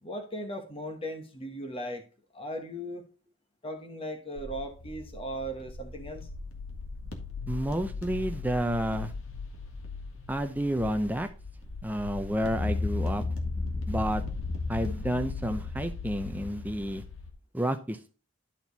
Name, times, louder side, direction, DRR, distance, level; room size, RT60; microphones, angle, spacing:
voice 1, 0.0-2.0 2.3-3.0 3.6-6.3, equal, 25° left, 5 dB, 1.1 m, -37 dB
sound 1, 4.4-17.3, left 3 dB, 70° left, 1.8 m, -36 dB
voice 2, 7.5-9.1 10.3-11.3 11.8-13.2 13.9-14.2 14.7-17.0 17.5-18.1, equal, 10° right, 7 dB, 0.5 m, -30 dB
11.5 x 4.5 x 4.1 m, 0.34 s
head